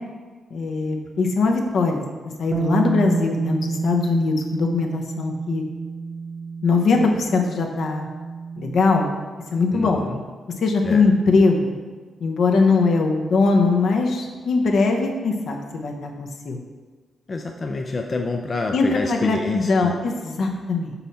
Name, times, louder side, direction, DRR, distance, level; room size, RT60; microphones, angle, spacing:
voice 1, 0.5-2.0 2.4-5.6 6.6-8.1 8.6-9.1 9.5-10.0 10.6-11.7 12.2-16.6 18.7-20.9, left 3 dB, 70° left, 2 dB, 0.8 m, -21 dB
Bass guitar, 2.5-8.8, right 5 dB, 45° right, 0.6 m, -29 dB
voice 2, 9.7-10.2 10.8-11.0 17.3-19.9, left 3 dB, 40° left, 3 dB, 0.4 m, -27 dB
5.6 x 4.1 x 4.2 m, 1.4 s
cardioid pair, 75°, 0 cm